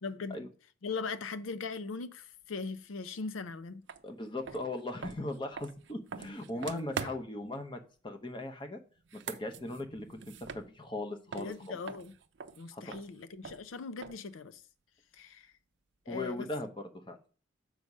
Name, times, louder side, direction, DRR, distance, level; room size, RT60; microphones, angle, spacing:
voice 1, 0.0-0.5 0.8-3.8 6.2-6.4 7.0-7.2 11.3-12.1 12.6-14.6 15.1-15.5 16.1-16.5, left 4 dB, 85° left, 0.5 m, -40 dB
sound 1, 3.9-4.0 4.4-7.5 9.0-11.0 11.3-14.4, right 5 dB, 65° right, 0.5 m, -44 dB
voice 2, 4.0-8.8 9.1-11.5 12.7-12.9 16.1-17.2, left 2 dB, 25° left, 0.8 m, -39 dB
6.5 x 4.8 x 5.4 m
head